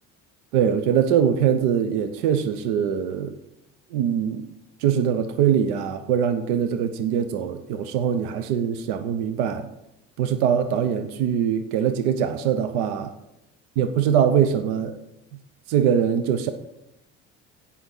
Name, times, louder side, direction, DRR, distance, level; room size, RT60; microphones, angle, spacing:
voice 1, 0.5-3.4 3.9-4.4 4.8-9.7 10.2-13.1 13.8-15.0 15.7-16.5, right 8 dB, 75° right, 9 dB, 0.8 m, -22 dB
16.5 x 6.0 x 3.9 m, 0.88 s
hypercardioid pair, 70°, 35 cm